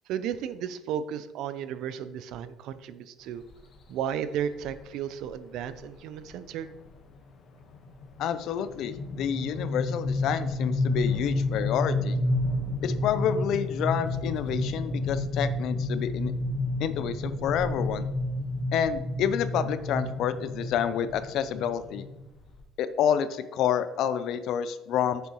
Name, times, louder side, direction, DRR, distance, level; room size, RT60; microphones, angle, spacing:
voice 1, 0.1-3.4 3.9-6.7, right 9 dB, 70° right, 12 dB, 0.6 m, -34 dB
sound 1, 3.5-3.8 4.6-4.8 5.2-5.3 5.6-5.9 6.3-22.6, left 2 dB, 45° left, 1.3 m, -30 dB
voice 2, 8.2-12.2 12.8-16.3 16.8-18.1 18.7-22.0 22.8-25.2, left 9 dB, 65° left, 12 dB, 0.6 m, -28 dB
8.3 x 6.9 x 3.1 m, 1.0 s
cardioid pair, 125°, 0 cm